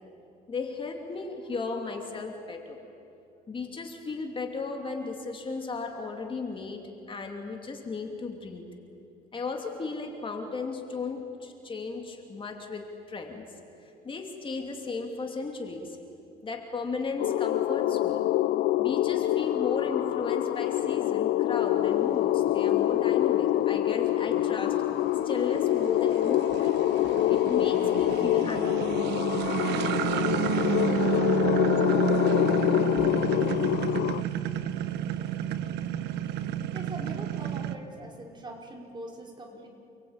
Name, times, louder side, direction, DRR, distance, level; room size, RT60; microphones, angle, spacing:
voice 1, 0.5-2.8 3.5-6.8 7.1-8.6 9.3-13.4 13.8-16.0 16.4-18.2 18.8-24.8 25.2-26.7 27.0-28.9, left 4 dB, 30° left, 3 dB, 2.9 m, -35 dB
sound 1, 17.2-34.2, left 14 dB, 75° left, 0.7 m, -26 dB
sound 2, 21.6-37.7, right 10 dB, 80° right, 1.3 m, -31 dB
voice 2, 36.7-39.7, right 2 dB, 25° right, 0 dB, 5.0 m, -42 dB
29.5 x 22.5 x 8.9 m, 2.7 s
cardioid pair, 110°, 17 cm